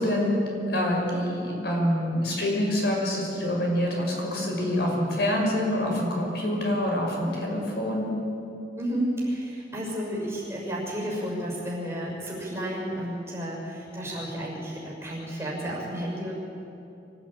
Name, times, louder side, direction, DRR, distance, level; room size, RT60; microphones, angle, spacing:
voice 1, 0.0-8.1, left 1 dB, 65° left, -1 dB, 5.9 m, -26 dB
voice 2, 8.7-16.4, equal, 15° right, -3 dB, 6.3 m, -32 dB
24.5 x 16.0 x 8.9 m, 2.8 s
head